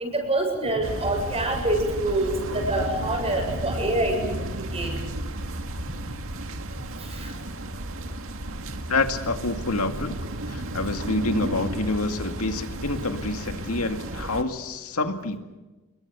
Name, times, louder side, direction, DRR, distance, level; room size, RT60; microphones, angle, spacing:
voice 1, 0.0-4.3 4.7-4.9 7.0-7.3, right 1 dB, 30° right, 3 dB, 7.3 m, -26 dB
sound 1, 0.8-14.4, right 1 dB, 65° right, 2.1 m, -33 dB
voice 2, 8.9-10.1 10.5-15.4, left 2 dB, 85° left, 7 dB, 2.1 m, -27 dB
29.5 x 22.0 x 6.9 m, 1.1 s
head